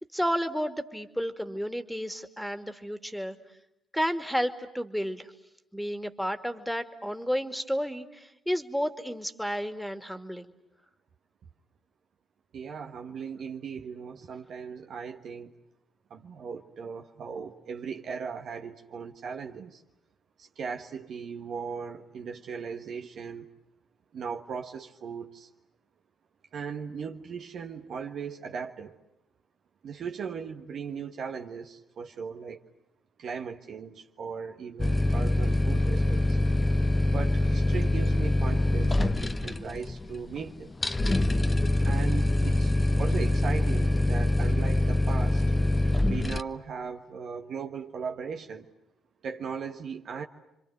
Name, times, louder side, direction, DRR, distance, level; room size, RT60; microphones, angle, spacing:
voice 1, 0.1-3.4 3.9-5.3 5.7-10.5, equal, ahead, 2.4 m, -31 dB
voice 2, 12.5-15.5 16.1-19.8 20.4-23.5 24.1-25.5 26.5-29.0 29.8-32.6 33.2-36.4 37.1-40.7 41.8-45.4 46.1-48.7 49.2-50.2, right 6 dB, 60° right, 1.4 m, -38 dB
sound 1, 34.8-46.4, left 1 dB, 25° left, 1.0 m, -25 dB
29.5 x 25.5 x 8.0 m
hypercardioid pair, 45°, 0 cm